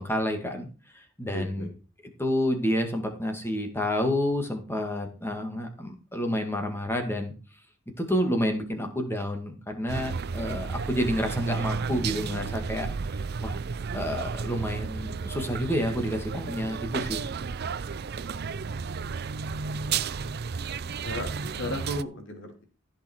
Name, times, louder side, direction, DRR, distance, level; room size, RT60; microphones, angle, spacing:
voice 1, 0.0-1.7 2.2-7.3 8.0-12.9 13.4-13.6 13.9-17.3, equal, 10° left, 4 dB, 2.2 m, -29 dB
voice 2, 1.3-1.7 18.5-18.6 20.9-22.6, left 1 dB, 60° left, 4 dB, 3.0 m, -35 dB
sound 1, 9.9-22.0, right 5 dB, 50° right, 0.5 m, -32 dB
15.0 x 5.9 x 4.6 m, 0.34 s
head